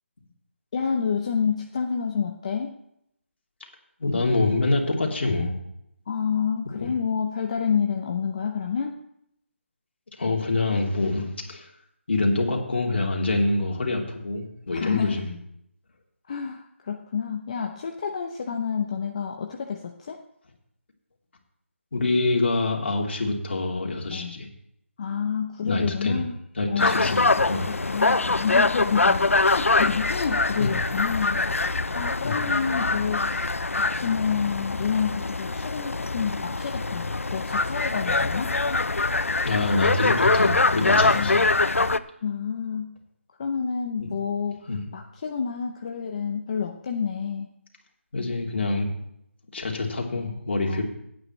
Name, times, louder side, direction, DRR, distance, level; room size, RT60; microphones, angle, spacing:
voice 1, 0.7-2.8 6.1-9.0 14.7-15.3 16.3-20.2 24.1-24.4 25.0-26.4 26.7-27.2 27.6-31.5 32.0-38.6 41.0-41.5 41.8-43.0 43.4-47.5 50.7-50.8, left 6 dB, 30° left, 3 dB, 0.8 m, -29 dB
voice 2, 4.0-5.5 6.8-6.9 10.2-11.7 12.1-15.3 21.9-24.5 25.6-26.2 26.6-27.2 27.5-27.7 30.6-30.7 32.2-32.4 39.4-41.4 44.0-44.1 44.7-44.8 48.1-48.9 49.5-50.8, left 2 dB, 55° left, -1 dB, 3.2 m, -25 dB
sound 1, 26.8-42.0, left 3 dB, 90° left, 0.6 m, -24 dB
18.0 x 9.0 x 3.2 m, 0.76 s
figure-of-eight pair, 165°, 7 cm